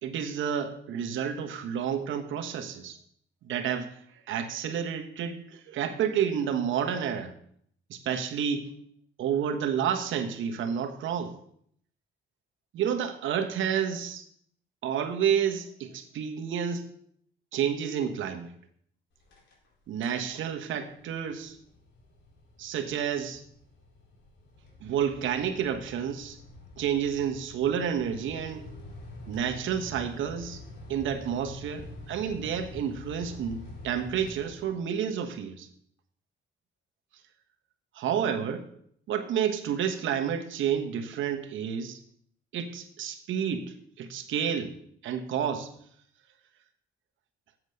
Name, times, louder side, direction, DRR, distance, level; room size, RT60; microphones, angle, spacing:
voice 1, 0.0-3.0 3.4-4.0 4.3-7.3 7.9-8.7 9.2-11.4 12.7-14.2 14.8-16.9 17.5-18.5 19.9-21.6 22.6-23.4 24.8-26.4 26.8-28.7 29.3-30.6 30.9-35.7 37.9-38.7 39.1-42.0 42.5-44.8 45.0-45.7, right 8 dB, 75° right, 6 dB, 1.3 m, -30 dB
sound 1, 19.1-19.7 19.9-20.3 20.7-35.0, left 2 dB, 70° left, 4.3 m, -47 dB
7.8 x 7.7 x 6.8 m, 0.66 s
cardioid pair, 90°, 20 cm